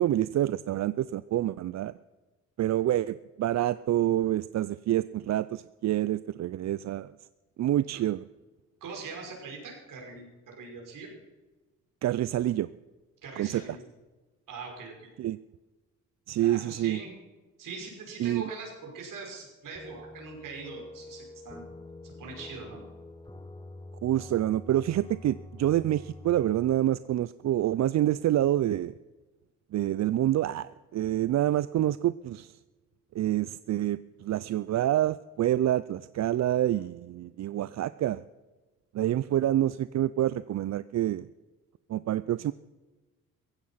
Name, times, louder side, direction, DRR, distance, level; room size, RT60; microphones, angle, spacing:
voice 1, 0.0-1.9 2.6-7.1 7.6-8.2 12.0-12.7 13.4-13.6 15.2-15.4 16.3-17.0 18.2-18.4 24.0-28.9 29.7-32.5 33.1-38.2 38.9-41.3 41.9-42.5, right 13 dB, 55° right, 16 dB, 0.5 m, -27 dB
voice 2, 8.8-11.1 13.2-13.8 14.5-15.1 16.3-17.1 17.6-21.6 22.0-22.9, right 4 dB, 70° right, 0 dB, 5.6 m, -42 dB
sound 1, 19.8-26.7, left 2 dB, 15° left, 1.0 m, -46 dB
16.0 x 15.5 x 5.7 m, 1.2 s
supercardioid pair, 65°, 33 cm